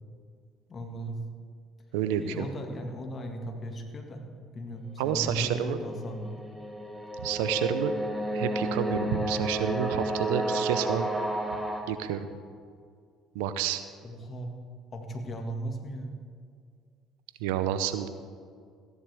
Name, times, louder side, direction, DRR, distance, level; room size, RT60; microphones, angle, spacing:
voice 1, 0.7-1.2 2.2-4.2 4.5-6.5 14.0-14.5 14.9-16.2, right 1 dB, 40° left, 3 dB, 1.9 m, -37 dB
voice 2, 1.9-2.5 5.0-5.8 7.2-7.9 8.3-11.1 11.9-12.3 13.3-13.8 17.4-18.1, right 9 dB, 80° right, 10 dB, 0.6 m, -29 dB
sound 1, 5.3-11.8, right 1 dB, 5° left, 2.0 m, -32 dB
15.0 x 10.5 x 3.5 m, 2.1 s
hypercardioid pair, 60°, 0 cm